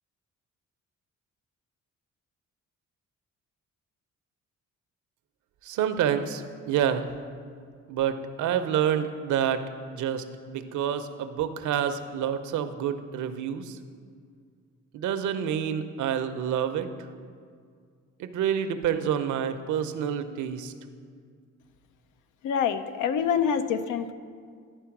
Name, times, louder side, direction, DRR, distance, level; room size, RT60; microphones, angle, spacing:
voice 1, 5.6-7.1 7.9-9.6 9.9-13.8 14.9-16.9 18.2-20.7, right 9 dB, 75° right, 10 dB, 0.6 m, -28 dB
voice 2, 22.4-24.1, left 7 dB, 85° left, 10 dB, 0.6 m, -26 dB
11.0 x 4.5 x 5.9 m, 2.1 s
cardioid pair, 90°, 30 cm